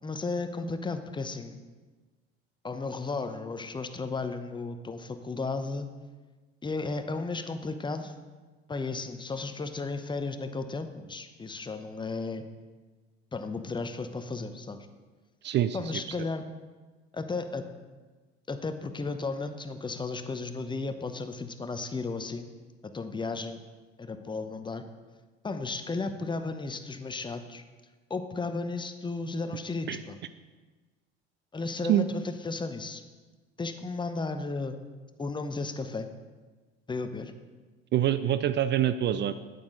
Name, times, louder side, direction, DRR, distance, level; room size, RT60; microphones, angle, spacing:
voice 1, 0.0-1.6 2.6-5.9 6.6-8.1 8.7-12.4 13.3-14.8 15.7-16.4 17.1-17.7 18.5-22.5 22.9-23.6 24.0-24.8 25.4-27.6 28.1-30.2 31.5-33.0 33.6-34.8 35.2-36.1 36.9-37.3, left 3 dB, 15° left, 8 dB, 0.7 m, -34 dB
voice 2, 15.4-15.8 29.9-30.0 31.9-32.1 37.9-39.3, right 11 dB, 35° right, 13 dB, 0.4 m, -25 dB
8.5 x 8.2 x 3.8 m, 1.3 s
hypercardioid pair, 70°, 32 cm